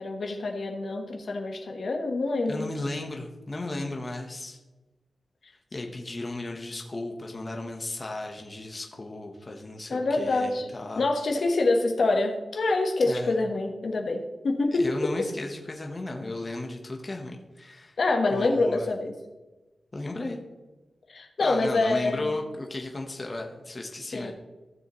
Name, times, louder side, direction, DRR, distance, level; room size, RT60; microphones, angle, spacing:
voice 1, 0.0-2.7 5.4-5.5 9.9-10.7 11.0-15.3 18.0-19.2 21.1-22.3 24.1-24.3, left 2 dB, 65° left, 3 dB, 1.2 m, -26 dB
voice 2, 2.5-4.6 5.7-11.0 13.0-13.3 14.7-18.0 18.3-18.8 19.9-20.4 21.4-24.3, left 2 dB, 30° left, 2 dB, 1.1 m, -35 dB
15.0 x 7.2 x 3.1 m, 1.1 s
wide cardioid pair, 120°, 0 cm